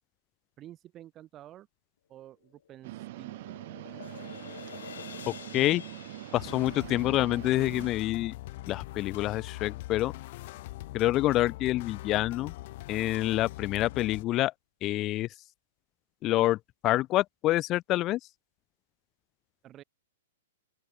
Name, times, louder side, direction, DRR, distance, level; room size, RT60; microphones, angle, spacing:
voice 1, 0.6-1.7 2.1-3.7 19.6-19.8, right 13 dB, 30° right, 6.2 m, -50 dB
sound 1, 2.4-8.8, left 9 dB, 65° left, 1.3 m, -49 dB
sound 2, 2.8-7.9, right 17 dB, 50° right, 2.4 m, -43 dB
voice 2, 5.3-5.8 6.3-8.3 8.7-10.1 10.9-12.5 12.9-14.5 14.8-15.3 16.2-16.6 16.8-18.2, left 16 dB, 30° left, 0.9 m, -27 dB
sound 3, 6.3-14.2, left 18 dB, 50° left, 3.8 m, -42 dB
open air
figure-of-eight pair, 110°, 0 cm